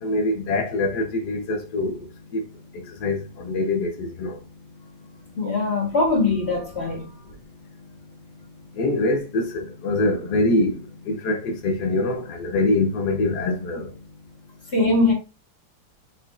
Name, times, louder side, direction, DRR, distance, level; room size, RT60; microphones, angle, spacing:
voice 1, 0.0-2.4 2.7-4.4 8.7-13.9, left 2 dB, 65° left, 1.2 m, -24 dB
voice 2, 5.4-7.1 14.7-15.1, left 3 dB, 35° left, 1.5 m, -21 dB
4.4 x 4.1 x 2.4 m
omnidirectional pair, 2.1 m